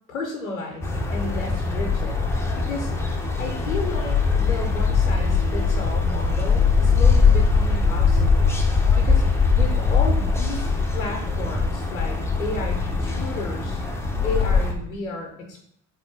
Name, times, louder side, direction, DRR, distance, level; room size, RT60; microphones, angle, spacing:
voice 1, 0.1-2.2 2.6-2.9 3.4-8.5 9.0-13.8 14.2-15.6, left 3 dB, 85° left, 1 dB, 0.7 m, -33 dB
sound 1, 0.8-14.7, left 4 dB, 5° left, 0.5 m, -21 dB
3.7 x 3.0 x 3.5 m, 0.72 s
figure-of-eight pair, 60°, 40 cm